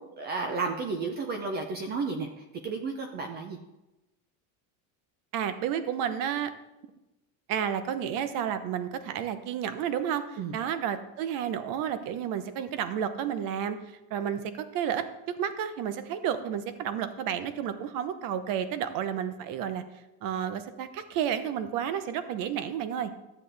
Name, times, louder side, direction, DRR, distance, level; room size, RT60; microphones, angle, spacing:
voice 1, 0.0-3.6 10.4-10.5, right 4 dB, 25° right, 5 dB, 0.3 m, -33 dB
voice 2, 5.3-6.5 7.5-13.8 14.1-19.8 20.2-23.1, right 9 dB, 45° right, 11 dB, 0.8 m, -31 dB
13.0 x 7.6 x 3.3 m, 1.0 s
cardioid pair, 165°, 46 cm